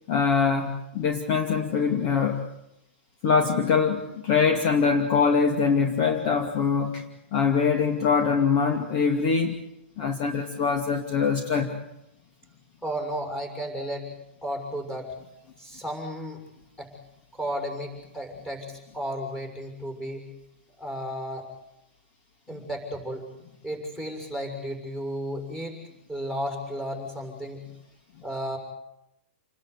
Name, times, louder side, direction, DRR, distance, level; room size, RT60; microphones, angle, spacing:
voice 1, 0.1-2.4 3.2-7.0 7.3-9.6 10.0-11.8 22.5-22.6, left 5 dB, 35° left, 4 dB, 2.5 m, -23 dB
voice 2, 12.8-14.1 14.4-15.1 15.6-16.4 16.8-16.9 17.3-20.2 20.8-21.5 22.5-23.3 23.6-25.8 26.1-27.6 28.2-28.6, equal, 5° left, 2 dB, 6.5 m, -33 dB
29.0 x 20.5 x 8.4 m, 0.85 s
hypercardioid pair, 165°, 7 cm